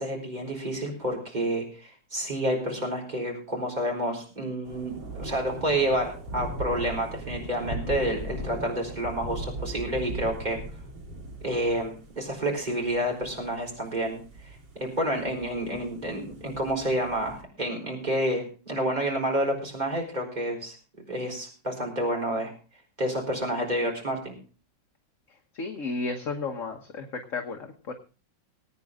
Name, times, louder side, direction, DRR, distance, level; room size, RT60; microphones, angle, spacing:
voice 1, 0.0-10.6 11.4-14.2 14.8-20.7 21.1-22.5 23.0-24.3, right 1 dB, 20° right, 1 dB, 4.3 m, -29 dB
sound 1, 4.7-17.4, right 1 dB, 75° right, 2.8 m, -39 dB
voice 2, 25.3-27.9, left 3 dB, 45° left, 3 dB, 1.5 m, -33 dB
21.0 x 9.2 x 3.6 m, 0.36 s
omnidirectional pair, 2.0 m